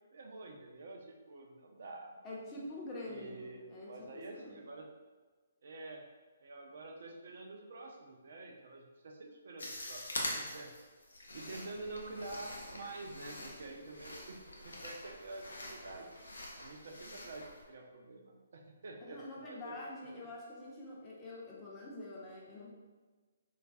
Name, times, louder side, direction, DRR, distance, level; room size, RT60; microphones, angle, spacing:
voice 1, 0.1-2.2 3.0-4.9 5.6-6.1 6.4-10.7 11.3-16.1 16.6-19.8, right 2 dB, 55° right, 1 dB, 0.4 m, -48 dB
voice 2, 2.2-4.6 19.0-22.7, left 2 dB, 20° left, -5 dB, 0.5 m, -46 dB
sound 1, 9.6-17.6, left 1 dB, 70° left, 0.5 m, -45 dB
2.3 x 2.2 x 2.4 m, 1.4 s
figure-of-eight pair, 135°, 0 cm